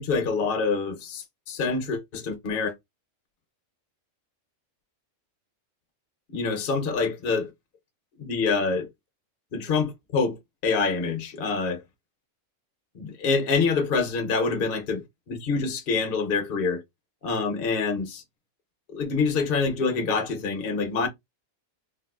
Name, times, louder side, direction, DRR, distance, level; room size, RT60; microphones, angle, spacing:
voice 1, 0.0-2.7 6.3-7.5 8.2-8.9 9.5-11.8 12.9-16.8 17.2-18.2 18.9-21.1, left 4 dB, 50° left, 0.8 m, -26 dB
3.7 x 2.4 x 2.4 m
omnidirectional pair, 1.5 m